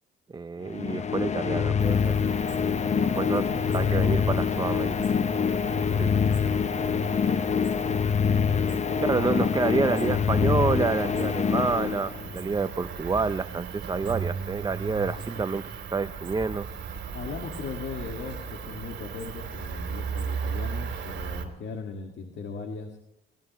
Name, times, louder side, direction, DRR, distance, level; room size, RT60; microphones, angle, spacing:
voice 1, 0.3-2.2 3.0-3.4 3.7-5.0 6.0-6.1 9.0-16.7, right 4 dB, 20° right, 11 dB, 0.5 m, -28 dB
sound 1, 0.7-12.5, left 6 dB, 35° left, 0.6 m, -25 dB
Cricket, 1.8-21.5, right 6 dB, 65° right, 2.9 m, -37 dB
voice 2, 2.8-4.8 5.2-7.7 8.4-10.2 15.2-15.5 17.1-23.0, left 4 dB, 65° left, 4 dB, 1.9 m, -38 dB
22.5 x 19.5 x 3.1 m, 0.84 s
cardioid pair, 90°, 20 cm